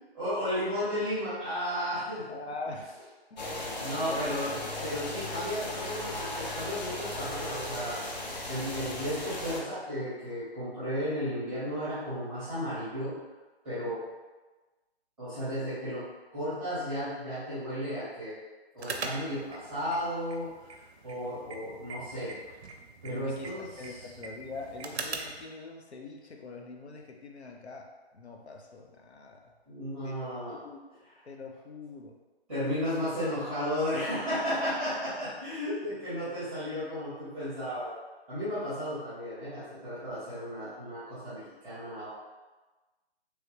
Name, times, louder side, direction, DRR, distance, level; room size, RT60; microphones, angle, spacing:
voice 1, 0.1-2.4 3.8-8.0 8.5-13.1 13.6-14.0 15.2-16.0 16.3-18.4 18.7-20.5 21.0-22.4 23.0-24.0 29.7-30.6 32.5-37.9 38.3-42.1, equal, 5° right, -13 dB, 0.8 m, -34 dB
voice 2, 2.3-2.9 3.3-3.8 4.1-4.9 5.2-5.3 23.0-27.9 28.1-29.4 30.0-30.8 31.2-32.1, left 3 dB, 90° left, 2 dB, 0.6 m, -43 dB
sound 1, 3.4-9.6, left 1 dB, 45° left, 0.5 m, -36 dB
sound 2, 18.8-25.4, right 4 dB, 85° right, 0.5 m, -42 dB
3.1 x 2.3 x 3.1 m, 1.2 s
figure-of-eight pair, 150°, 32 cm